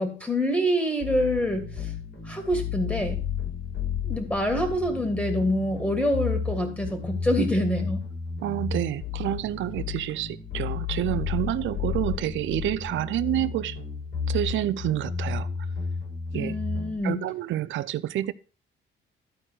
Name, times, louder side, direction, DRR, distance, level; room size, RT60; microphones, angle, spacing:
voice 1, 0.0-1.9 2.2-3.2 4.0-8.0 16.3-17.2, equal, 10° left, 2.5 m, -26 dB
sound 1, 1.0-17.0, left 6 dB, 60° left, 6.2 m, -32 dB
voice 2, 8.4-13.8 14.3-15.5 16.3-16.6 17.0-18.3, right 13 dB, 75° right, 0.6 m, -28 dB
12.5 x 4.4 x 6.2 m
cardioid pair, 90°, 20 cm